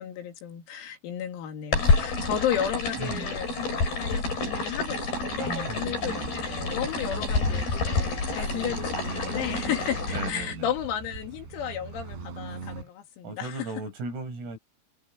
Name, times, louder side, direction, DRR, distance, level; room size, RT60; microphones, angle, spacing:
voice 1, 0.0-10.0 10.3-13.7, left 10 dB, 85° left, 5.8 m, -33 dB
sound 1, 1.7-10.3, left 3 dB, 45° left, 9.1 m, -28 dB
voice 2, 3.0-3.3 5.4-6.2 8.4-8.5 10.1-10.7 13.2-14.6, right 3 dB, 90° right, 10.5 m, -36 dB
Accelerating revving vroom, 4.2-12.9, right 4 dB, 55° right, 8.5 m, -41 dB
omnidirectional pair, 6.0 m